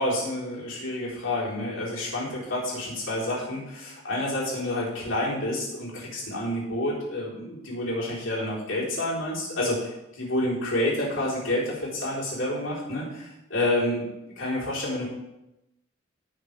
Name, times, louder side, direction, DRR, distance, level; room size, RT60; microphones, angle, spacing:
voice 1, 0.0-14.1 14.4-15.1, left 1 dB, 70° left, -6 dB, 4.3 m, -29 dB
16.5 x 6.5 x 3.5 m, 0.91 s
head